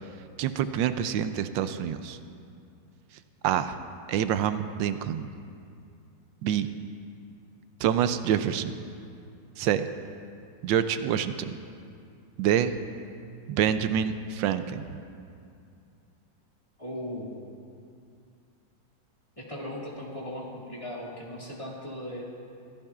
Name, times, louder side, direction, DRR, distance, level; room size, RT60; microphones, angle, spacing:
voice 1, 0.4-2.2 3.4-3.8 4.1-5.3 6.4-6.7 7.8-8.7 9.6-9.9 10.6-11.6 12.4-12.7 13.5-15.0, right 9 dB, 85° right, 10 dB, 1.3 m, -26 dB
voice 2, 16.8-17.3 19.4-22.2, left 1 dB, 15° left, -5 dB, 2.1 m, -38 dB
25.0 x 14.5 x 2.4 m, 2.4 s
omnidirectional pair, 2.0 m